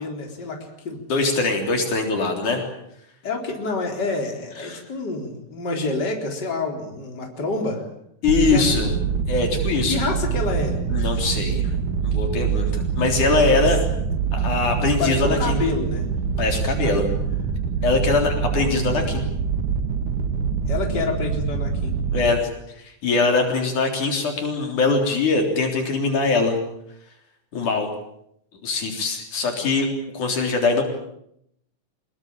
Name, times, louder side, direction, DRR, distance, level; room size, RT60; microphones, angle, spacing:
voice 1, 0.0-1.0 3.2-7.9 8.4-8.9 9.9-10.8 13.5-13.7 14.8-16.1 16.8-17.0 20.7-21.9, left 3 dB, 30° left, 2 dB, 4.5 m, -28 dB
voice 2, 1.1-2.6 4.6-4.8 8.2-8.9 9.3-10.0 10.9-11.6 12.0-13.8 14.3-15.6 16.4-17.1 17.8-19.2 22.1-22.5 22.8-26.6 27.5-27.9 28.6-30.8, left 3 dB, 70° left, 3 dB, 5.1 m, -22 dB
sound 1, 8.2-22.3, right 6 dB, 75° right, 3.2 m, -25 dB
25.0 x 21.5 x 8.8 m, 0.76 s
omnidirectional pair, 3.6 m